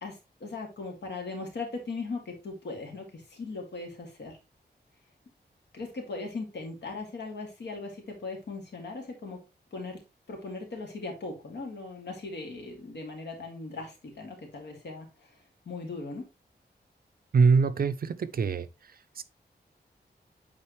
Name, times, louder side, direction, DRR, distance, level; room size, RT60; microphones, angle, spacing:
voice 1, 0.0-4.4 5.7-9.4 9.7-10.0 10.3-15.3 15.7-16.2, left 3 dB, 80° left, 2.3 m, -39 dB
voice 2, 17.3-18.7 19.2-19.3, right 5 dB, 55° right, 0.6 m, -23 dB
8.8 x 4.2 x 3.1 m
wide cardioid pair, 155°, 18 cm